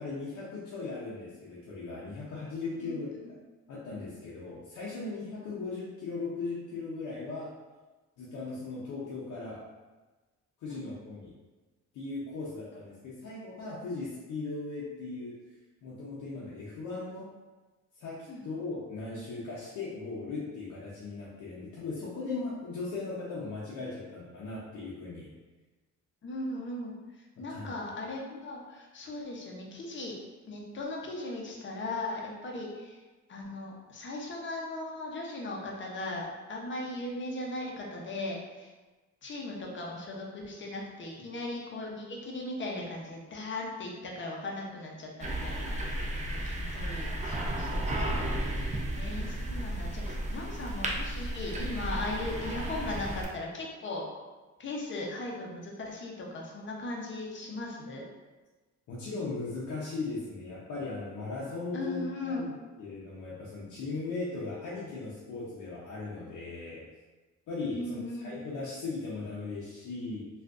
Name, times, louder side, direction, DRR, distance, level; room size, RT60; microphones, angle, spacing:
voice 1, 0.0-3.1 3.7-7.5 8.2-9.6 10.6-11.3 11.9-15.4 15.8-17.3 18.0-25.3 27.4-27.7 58.9-66.9 67.5-70.3, left 3 dB, 80° left, -7 dB, 0.7 m, -38 dB
voice 2, 26.2-26.9 27.4-30.1 30.5-33.0 33.3-38.7 39.2-45.8 46.3-54.1 54.6-58.0 61.7-62.5 67.7-68.3, left 2 dB, 40° left, -1 dB, 0.8 m, -38 dB
sound 1, 45.2-53.2, right 1 dB, 25° right, 0.5 m, -33 dB
3.4 x 2.5 x 2.5 m, 1.2 s
cardioid pair, 90°, 30 cm